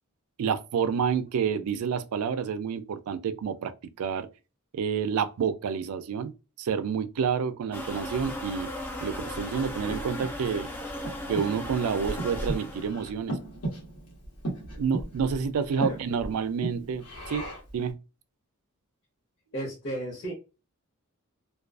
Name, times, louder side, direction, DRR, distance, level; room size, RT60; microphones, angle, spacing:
voice 1, 0.4-3.7 4.0-4.3 4.7-6.3 6.6-8.7 9.0-10.7 11.3-13.4 14.8-17.5 17.7-18.0, right 6 dB, 70° right, 0.3 m, -29 dB
sound 1, 7.7-12.9, left 1 dB, 10° left, 0.4 m, -36 dB
Breathing, 9.3-17.8, right 1 dB, 90° left, 1.1 m, -37 dB
voice 2, 19.5-20.3, right 1 dB, 65° left, 1.0 m, -33 dB
2.4 x 2.3 x 2.3 m
head